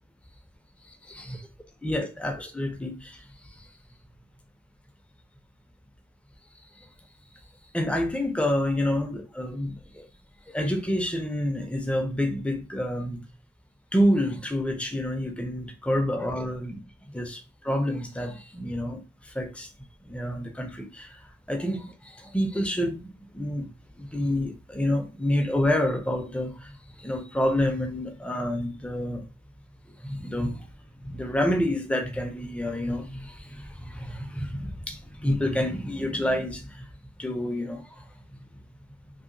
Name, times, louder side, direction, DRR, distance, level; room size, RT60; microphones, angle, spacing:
voice 1, 0.9-1.4 1.8-3.7 6.8-6.9 7.7-10.1 10.5-13.2 13.9-16.8 17.1-19.7 20.0-21.2 21.5-23.1 23.3-23.7 24.0-29.2 30.0-30.7 31.0-36.9 37.2-38.1, left 1 dB, 5° left, 0.4 m, -28 dB
2.7 x 2.7 x 2.5 m
head